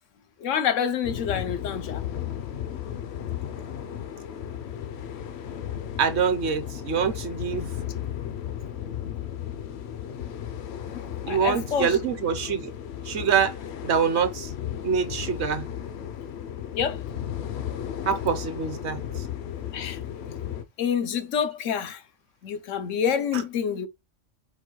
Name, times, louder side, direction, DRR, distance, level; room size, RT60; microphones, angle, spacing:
voice 1, 0.4-2.0 10.9-12.0 16.7-17.0 19.7-20.0 20.8-22.0 22.4-23.9, left 8 dB, 90° left, 1.1 m, -27 dB
sound 1, 1.0-20.6, left 10 dB, 65° left, 0.8 m, -35 dB
voice 2, 6.0-7.7 11.3-12.7 13.0-13.6 13.8-14.5 14.8-15.7 18.1-19.3 23.3-23.4, right 6 dB, 65° right, 1.1 m, -25 dB
4.5 x 2.2 x 4.4 m
omnidirectional pair, 1.3 m